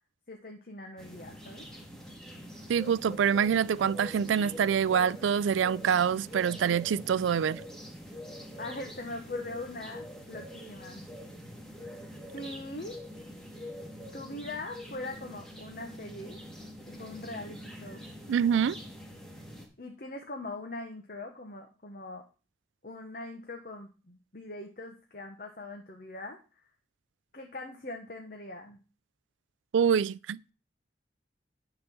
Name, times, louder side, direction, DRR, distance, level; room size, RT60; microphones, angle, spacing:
voice 1, 0.3-1.7 8.6-11.0 12.3-13.0 14.1-16.4 16.9-18.1 19.8-22.2 22.8-26.4 27.3-28.8, left 2 dB, 50° left, 1.0 m, -41 dB
sound 1, 1.0-19.7, equal, 5° left, 1.8 m, -45 dB
voice 2, 2.7-7.6 18.3-18.8 29.7-30.5, right 7 dB, 90° right, 0.3 m, -26 dB
10.5 x 4.0 x 7.0 m
head